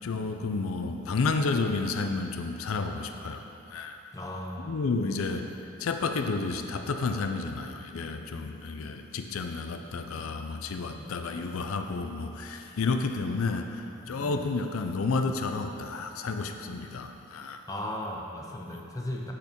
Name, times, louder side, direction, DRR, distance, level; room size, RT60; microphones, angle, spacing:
voice 1, 0.0-4.0 4.6-5.5 5.8-17.6, left 4 dB, 85° left, 6 dB, 0.5 m, -31 dB
voice 2, 4.1-4.8 10.9-11.0 14.2-14.5 17.7-19.3, left 1 dB, 15° left, -1 dB, 0.6 m, -36 dB
8.4 x 4.4 x 5.1 m, 2.7 s
head